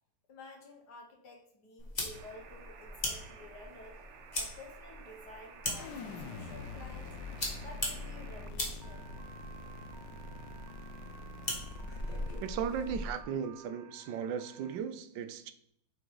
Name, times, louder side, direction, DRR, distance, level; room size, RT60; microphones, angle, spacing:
voice 1, 0.3-4.0 4.3-7.2 7.6-9.2, left 2 dB, 65° left, 2 dB, 1.8 m, -52 dB
sound 1, 1.8-13.2, left 1 dB, 25° left, 1.6 m, -41 dB
sound 2, 2.1-14.8, right 7 dB, 65° right, 0.7 m, -54 dB
sound 3, 5.8-12.5, left 3 dB, 80° left, 1.4 m, -45 dB
voice 2, 12.4-15.5, right 7 dB, 80° right, 10 dB, 1.3 m, -36 dB
7.7 x 3.8 x 4.7 m, 0.72 s
omnidirectional pair, 2.0 m